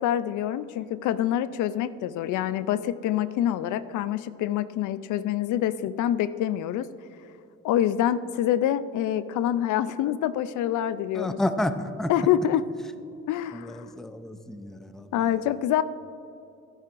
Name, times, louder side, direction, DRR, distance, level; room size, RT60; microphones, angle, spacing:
voice 1, 0.0-6.9 7.6-11.4 12.1-12.6 13.3-13.9 15.1-15.8, left 11 dB, 80° left, 14 dB, 0.4 m, -26 dB
voice 2, 11.2-12.1 13.5-13.6 14.0-15.1, left 1 dB, ahead, 9 dB, 0.5 m, -30 dB
12.5 x 10.5 x 2.5 m, 2.8 s
cardioid pair, 90°, 30 cm